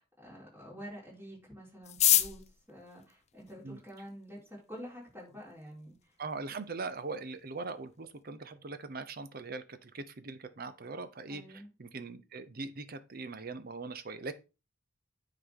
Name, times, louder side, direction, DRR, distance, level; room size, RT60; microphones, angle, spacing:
voice 1, 0.0-2.4 2.7-5.9 11.3-11.7, equal, 10° right, 4.5 m, -48 dB
sound 1, 1.8-4.1 4.9-5.0 5.2-5.3 5.6-6.0 6.4-6.5 6.6-7.1 7.4-7.6 7.9-8.2, left 12 dB, 35° left, 0.5 m, -29 dB
voice 2, 6.2-14.3, right 3 dB, 50° right, 0.7 m, -41 dB
9.9 x 4.0 x 3.7 m
head